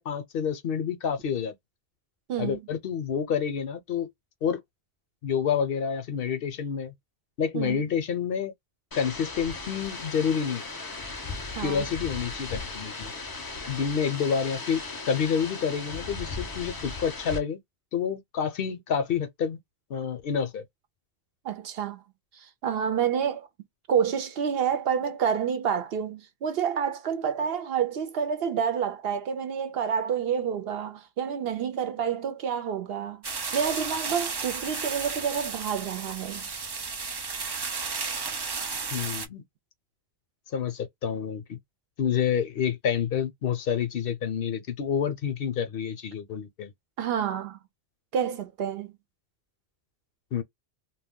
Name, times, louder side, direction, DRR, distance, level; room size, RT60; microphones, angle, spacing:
voice 1, 0.0-1.5 2.4-4.1 4.4-4.6 5.2-6.9 7.4-8.5 8.9-10.6 11.6-13.1 13.7-17.6 17.9-19.6 19.9-20.6 38.9-39.4 40.5-41.6 42.0-46.7 50.3-50.4, left 7 dB, 65° left, 0.7 m, -28 dB
voice 2, 2.3-2.6 7.5-7.8 11.6-11.8 21.4-22.0 22.6-23.5 23.9-33.2 33.5-36.4 47.0-47.6 48.1-48.9, right 7 dB, 65° right, 0.8 m, -28 dB
sound 1, 8.9-17.4, left 3 dB, 30° left, 0.4 m, -37 dB
sound 2, 33.2-39.3, right 4 dB, 45° right, 0.3 m, -33 dB
2.3 x 2.2 x 3.5 m
omnidirectional pair, 1.1 m